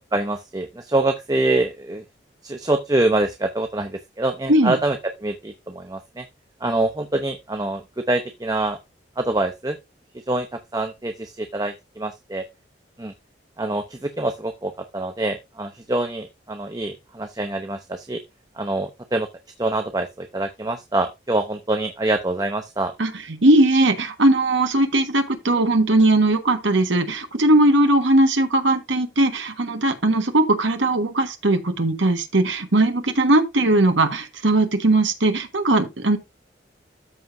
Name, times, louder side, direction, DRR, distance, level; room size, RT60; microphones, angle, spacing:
voice 1, 0.1-2.0 2.4-6.2 6.6-8.8 9.2-9.8 10.3-12.4 13.0-13.1 13.6-18.2 18.6-19.3 19.6-22.9, right 2 dB, 20° right, 0.8 m, -25 dB
voice 2, 23.0-36.2, right 2 dB, 85° right, 1.4 m, -19 dB
13.0 x 5.1 x 2.6 m
head